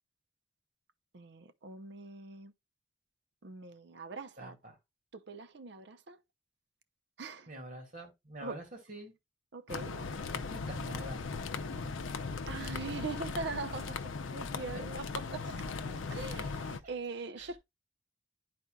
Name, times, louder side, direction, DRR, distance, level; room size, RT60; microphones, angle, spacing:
voice 1, 1.1-2.5 3.4-4.6 5.1-6.2 7.2-7.5 8.4-8.6 9.5-10.1 12.5-15.8 16.1-17.6, right 3 dB, 60° right, 0.6 m, -42 dB
voice 2, 4.4-4.8 7.5-9.1 9.9-11.9 15.9-16.4 17.4-17.5, right 1 dB, 45° right, 2.3 m, -47 dB
sound 1, 9.7-16.8, left 4 dB, 85° left, 0.6 m, -38 dB
10.5 x 4.3 x 2.3 m
head